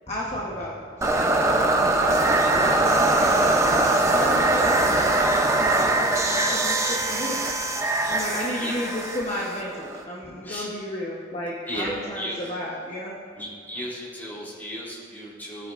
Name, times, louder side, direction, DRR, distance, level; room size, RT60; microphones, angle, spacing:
voice 1, 0.1-1.7 2.0-3.8 4.1-7.4 8.1-13.2 13.7-13.9, left 1 dB, 35° left, -5 dB, 1.1 m, -33 dB
sound 1, 1.0-10.0, right 2 dB, 15° right, 0.7 m, -22 dB
voice 2, 11.7-12.4 13.4-15.7, equal, 10° left, -7 dB, 2.8 m, -34 dB
18.0 x 9.3 x 2.6 m, 2.2 s
head